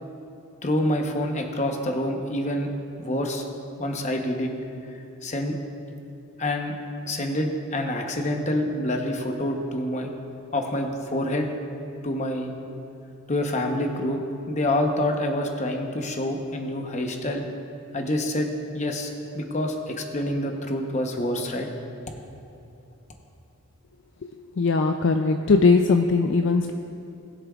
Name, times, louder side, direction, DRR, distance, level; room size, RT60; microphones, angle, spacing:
voice 1, 0.6-2.7 3.0-3.4 3.8-4.5 5.2-5.5 6.4-6.7 7.1-10.1 10.5-11.5 12.0-12.5 13.3-14.2 14.5-17.5 17.9-21.7, left 1 dB, 30° left, 3 dB, 0.8 m, -27 dB
voice 2, 24.6-26.7, left 4 dB, 55° left, 5 dB, 0.3 m, -20 dB
20.0 x 7.4 x 2.4 m, 2.7 s
head